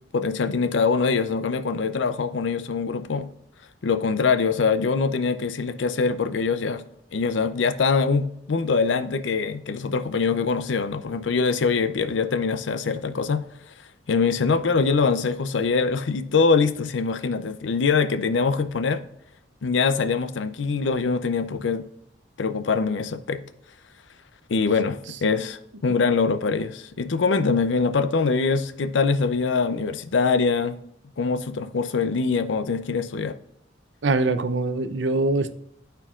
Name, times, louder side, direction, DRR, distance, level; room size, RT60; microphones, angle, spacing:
voice 1, 0.1-3.3 3.8-6.8 7.1-13.7 14.1-19.0 19.6-21.8 22.4-23.4 24.5-30.8 31.2-33.3, left 4 dB, 75° left, 0.5 m, -23 dB
voice 2, 34.0-35.5, right 2 dB, 70° right, 0.6 m, -23 dB
12.5 x 4.5 x 2.4 m
head